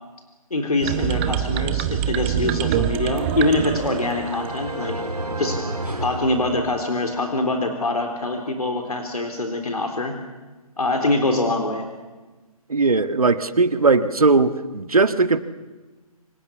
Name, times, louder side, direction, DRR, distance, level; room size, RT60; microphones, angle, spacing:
voice 1, 0.5-4.9 5.4-5.6 6.0-10.2 10.8-11.8, left 2 dB, 75° left, 4 dB, 3.8 m, -24 dB
sound 1, 0.8-4.8, right 11 dB, 20° right, 0.9 m, -25 dB
sound 2, 2.8-7.2, right 1 dB, 85° right, 3.2 m, -32 dB
voice 2, 12.7-15.4, right 3 dB, 70° right, 10 dB, 1.7 m, -18 dB
29.0 x 25.0 x 7.1 m, 1.2 s
figure-of-eight pair, 140°, 19 cm